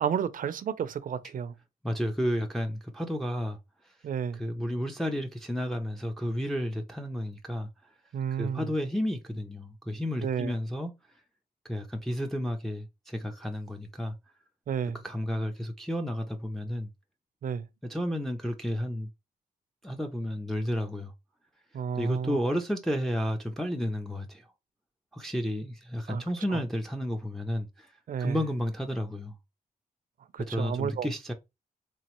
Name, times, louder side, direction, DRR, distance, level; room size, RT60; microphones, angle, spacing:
voice 1, 0.0-1.5 4.0-4.4 8.1-8.7 10.2-10.5 14.7-15.0 17.4-17.6 21.7-22.4 26.1-26.2 26.5-26.6 28.1-28.4 30.3-31.1, right 7 dB, 65° right, 0.5 m, -31 dB
voice 2, 1.8-3.6 3.8-3.9 4.3-7.7 8.4-10.9 11.7-14.1 14.9-16.9 17.8-19.1 19.8-21.1 21.9-24.5 25.1-27.9 28.2-29.3 30.5-31.3, equal, ahead, 0.5 m, -32 dB
3.7 x 3.0 x 2.9 m
cardioid pair, 105°, 15 cm